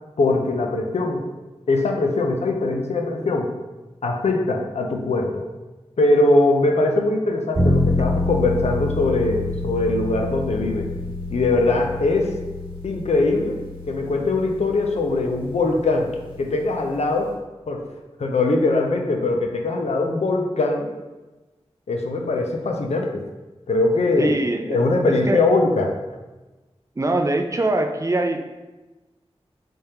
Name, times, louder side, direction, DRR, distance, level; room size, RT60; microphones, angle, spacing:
voice 1, 0.2-1.3 1.7-3.5 4.0-5.5 6.0-10.9 11.3-12.3 12.8-13.6 13.9-16.1 16.4-17.3 17.7-17.8 18.2-20.9 21.9-23.2 23.7-24.3 24.7-25.9, left 2 dB, 85° left, 2 dB, 0.5 m, -21 dB
sound 1, 7.5-17.3, left 2 dB, 50° right, 1.4 m, -27 dB
voice 2, 24.2-24.8 25.1-25.4 27.0-28.4, right 2 dB, 30° right, 5 dB, 0.3 m, -23 dB
3.4 x 3.3 x 2.8 m, 1.1 s
wide cardioid pair, 65°, 11 cm